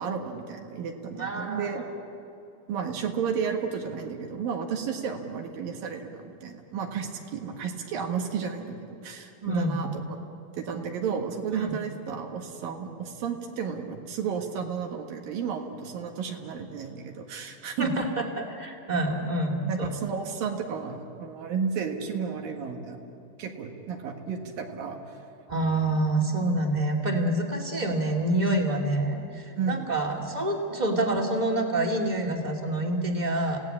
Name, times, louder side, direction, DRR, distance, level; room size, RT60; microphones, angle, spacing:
voice 1, 0.0-1.8 2.7-10.2 10.6-18.1 19.6-23.1 23.4-25.0 29.6-29.9, right 6 dB, 75° right, 2 dB, 3.4 m, -32 dB
voice 2, 1.2-1.7 9.4-9.8 11.5-11.7 17.8-19.9 25.5-33.6, right 1 dB, 15° right, 0 dB, 1.8 m, -27 dB
30.0 x 17.5 x 8.6 m, 2.7 s
omnidirectional pair, 4.2 m